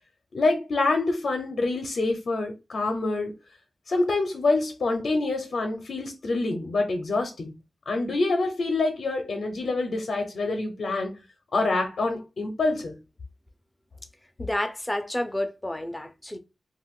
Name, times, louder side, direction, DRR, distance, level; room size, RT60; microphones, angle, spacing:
voice 1, 0.3-3.3 3.9-7.5 7.9-11.2 11.5-12.9, left 3 dB, 60° left, 0.6 m, -26 dB
voice 2, 14.4-16.4, left 1 dB, 10° left, 0.4 m, -30 dB
2.4 x 2.2 x 3.5 m
wide cardioid pair, 170°, 0 cm